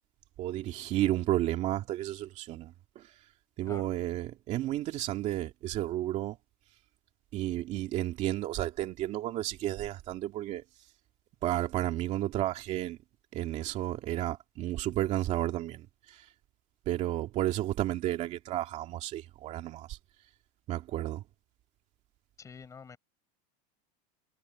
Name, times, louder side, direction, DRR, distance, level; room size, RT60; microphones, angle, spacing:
voice 1, 0.4-3.1 3.6-6.4 7.3-10.6 11.4-13.0 13.3-16.3 16.9-20.0 20.7-21.2, right 14 dB, 35° right, 2.4 m, -32 dB
voice 2, 22.4-23.0, left 6 dB, 15° left, 6.5 m, -47 dB
supercardioid pair, 165°, 21 cm